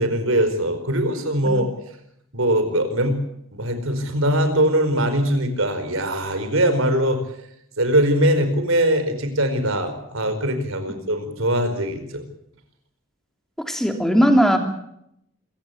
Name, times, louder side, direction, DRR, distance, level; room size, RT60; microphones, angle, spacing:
voice 1, 0.0-1.7 2.3-3.2 3.5-7.2 7.8-12.2, right 1 dB, 70° right, 8 dB, 4.7 m, -21 dB
voice 2, 13.7-14.6, equal, ahead, 5 dB, 3.1 m, -18 dB
27.0 x 16.0 x 8.5 m, 0.76 s
head